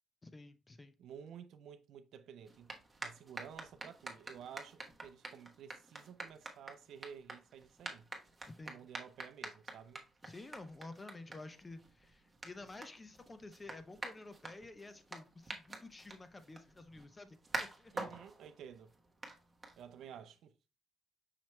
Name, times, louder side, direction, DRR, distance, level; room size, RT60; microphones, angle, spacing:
voice 1, 0.2-1.0 8.5-8.9 10.2-17.9, left 2 dB, 25° left, 0.6 m, -51 dB
voice 2, 1.0-2.7 3.0-8.1 8.6-10.0 17.9-18.9 19.8-20.5, right 8 dB, 75° right, 0.5 m, -52 dB
sound 1, 2.4-20.2, right 2 dB, 20° right, 1.1 m, -48 dB
5.8 x 2.9 x 3.1 m
cardioid pair, 90°, 0 cm